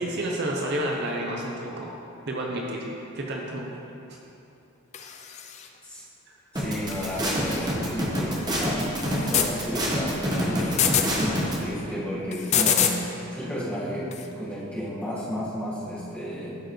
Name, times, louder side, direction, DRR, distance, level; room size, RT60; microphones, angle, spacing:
voice 1, 0.0-2.0 2.3-3.7, right 1 dB, 50° right, -1 dB, 0.6 m, -30 dB
sound 1, 4.9-5.7 6.9-7.8 9.0-9.5 10.6-11.1 12.3-13.0 14.1-14.3, left 8 dB, 30° left, 0.3 m, -26 dB
voice 2, 6.5-16.6, equal, 5° left, -10 dB, 1.5 m, -33 dB
sound 2, 6.6-11.5, equal, 20° right, 0.9 m, -26 dB
12.5 x 4.5 x 3.1 m, 2.8 s
head